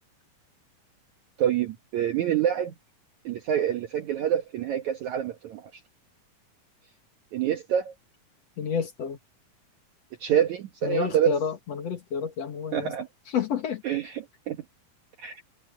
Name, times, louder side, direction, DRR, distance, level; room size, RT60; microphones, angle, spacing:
voice 1, 1.4-2.7 3.2-5.7 7.3-7.9 10.2-11.3 12.7-13.1 13.8-14.6 15.2-15.4, right 10 dB, 60° right, 2.4 m, -26 dB
voice 2, 8.6-9.2 10.8-12.9 13.3-13.8, left 7 dB, 50° left, 2.7 m, -29 dB
omnidirectional pair, 4.2 m